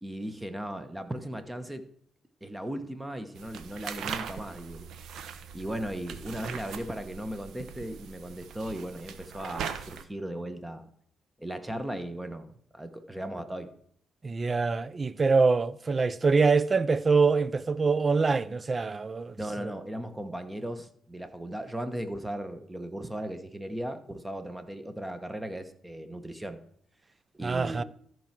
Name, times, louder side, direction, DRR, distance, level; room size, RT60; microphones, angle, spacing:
voice 1, 0.0-1.8 2.4-4.9 5.5-10.9 11.4-13.7 19.4-26.6 27.3-27.8, right 1 dB, 10° right, 1.2 m, -37 dB
sound 1, 3.3-10.0, right 7 dB, 75° right, 0.9 m, -40 dB
voice 2, 14.2-19.7 27.4-27.8, right 4 dB, 30° right, 0.4 m, -25 dB
13.5 x 4.6 x 5.9 m
cardioid pair, 90°, 0 cm